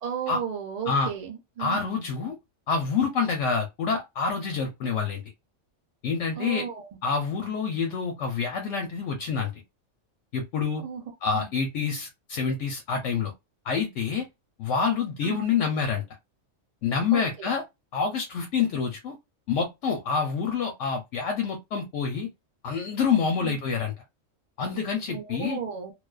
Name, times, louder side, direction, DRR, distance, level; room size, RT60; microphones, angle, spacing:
voice 1, 0.0-1.8 6.4-6.9 10.8-11.0 11.3-11.5 15.2-15.4 17.1-17.5 23.4-23.6 25.1-25.9, right 7 dB, 65° right, 0.3 m, -34 dB
voice 2, 1.6-2.4 2.7-5.2 6.0-6.6 7.0-9.5 10.3-10.8 11.2-13.3 13.7-14.3 14.6-16.0 16.8-17.6 17.9-19.2 19.5-22.3 22.6-23.9 24.6-25.6, left 5 dB, 70° left, 0.8 m, -27 dB
2.4 x 2.2 x 2.3 m
omnidirectional pair, 1.4 m